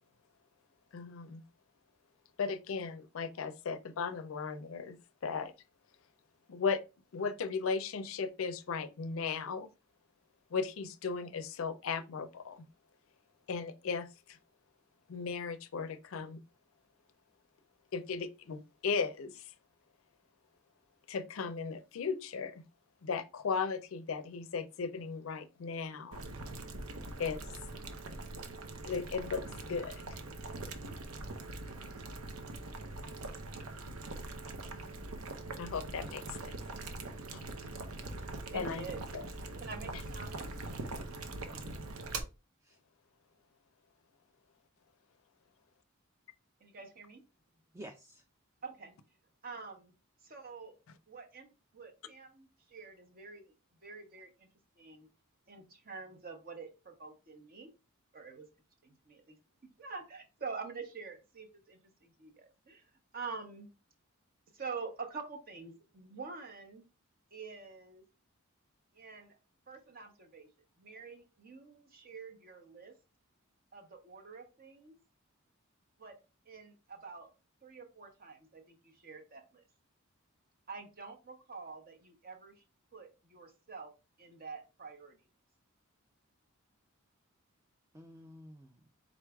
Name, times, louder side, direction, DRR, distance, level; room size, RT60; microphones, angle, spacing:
voice 1, 0.9-1.4 2.4-5.0 5.2-5.5 6.5-6.8 7.1-9.7 10.5-12.6 13.5-14.4 15.1-16.4 17.9-19.4 21.1-22.6 23.0-26.2 27.2-27.5 28.8-30.1 35.6-36.5 37.3-37.4 38.5-38.8 39.1-39.2, left 5 dB, 65° left, 0.4 m, -36 dB
Boiling, 26.1-42.2, right 2 dB, 85° right, 0.7 m, -43 dB
voice 2, 38.5-39.0 39.6-40.5 46.6-47.2 48.6-49.0 49.4-49.9 50.2-50.8 51.1-53.5 53.8-54.5 54.8-55.1 55.5-57.7 58.1-58.5 58.8-59.4 59.8-63.7 64.5-66.8 67.3-68.0 68.9-69.4 69.7-70.5 70.8-72.9 73.7-75.0 76.0-76.2 76.4-77.3 77.6-79.6 80.7-82.6 82.9-83.9 84.2-85.2, right 4 dB, 45° right, 0.9 m, -47 dB
voice 3, 41.3-41.8 42.6-42.8 47.7-48.2 87.9-88.9, equal, 15° right, 0.3 m, -51 dB
4.6 x 3.9 x 2.3 m
head